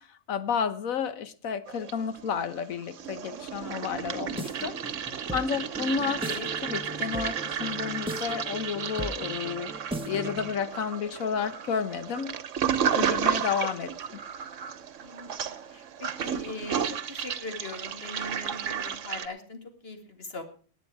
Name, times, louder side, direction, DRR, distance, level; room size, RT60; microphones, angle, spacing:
voice 1, 0.0-4.8 5.3-6.3 6.6-9.7 10.0-12.4 12.9-14.2, left 7 dB, 90° left, 13 dB, 1.4 m, -31 dB
Toilet flush, 1.7-2.5 2.8-19.3, right 8 dB, 70° right, 1.2 m, -33 dB
voice 2, 3.6-4.0 6.2-6.5 12.9-13.5 15.0-20.5, left 2 dB, 45° left, 5 dB, 2.4 m, -41 dB
sound 1, 4.1-10.6, right 1 dB, 5° right, 1.0 m, -38 dB
18.5 x 9.0 x 4.7 m, 0.40 s
omnidirectional pair, 1.4 m